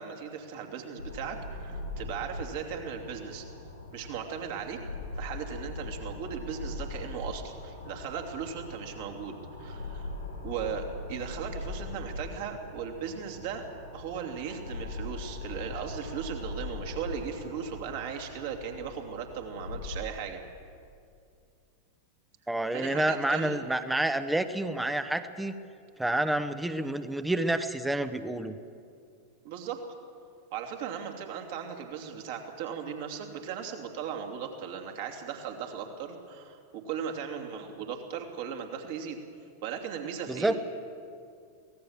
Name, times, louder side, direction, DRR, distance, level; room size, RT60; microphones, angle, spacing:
voice 1, 0.0-3.4 3.9-4.8 5.2-10.1 10.4-13.7 13.9-20.4 22.7-23.6 29.4-29.8 30.5-39.2 39.6-40.6, right 7 dB, 50° right, 3 dB, 2.9 m, -37 dB
sound 1, 1.0-20.0, left 2 dB, 85° left, 3.9 m, -41 dB
voice 2, 22.5-25.6 26.0-28.5 40.3-40.6, right 1 dB, 5° right, 11 dB, 1.0 m, -29 dB
24.0 x 17.5 x 7.4 m, 2.4 s
figure-of-eight pair, 90°, 0 cm